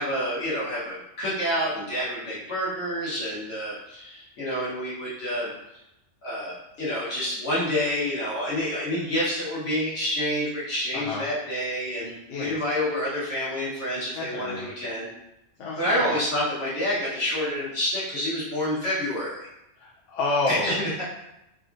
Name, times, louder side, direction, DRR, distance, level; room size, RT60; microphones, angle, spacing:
voice 1, 0.0-5.5 6.2-15.1 15.8-19.5 20.5-21.0, equal, 60° left, -10 dB, 1.4 m, -28 dB
voice 2, 10.9-11.2 12.3-12.5 14.1-14.7 15.6-16.1 19.8-20.8, left 2 dB, 90° left, -4 dB, 0.9 m, -29 dB
3.5 x 2.4 x 2.5 m, 0.88 s
omnidirectional pair, 1.2 m